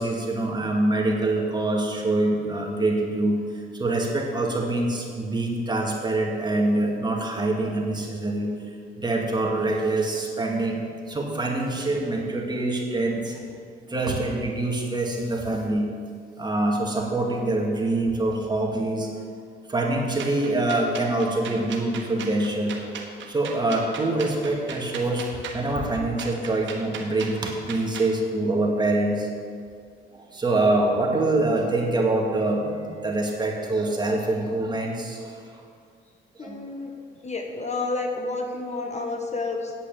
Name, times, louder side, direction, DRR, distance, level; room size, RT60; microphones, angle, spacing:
voice 1, 0.0-8.5 9.0-13.5 13.9-15.9 16.4-19.1 19.7-22.8 23.3-25.3 25.5-29.3 30.1-35.6 36.4-36.6, right 2 dB, 20° right, -1 dB, 2.2 m, -25 dB
sound 1, 20.2-28.1, right 6 dB, 70° right, 1.5 m, -38 dB
voice 2, 36.4-36.9 37.2-39.7, left 3 dB, 35° left, 3 dB, 1.3 m, -30 dB
8.9 x 8.3 x 7.6 m, 2.2 s
cardioid pair, 90°, 20 cm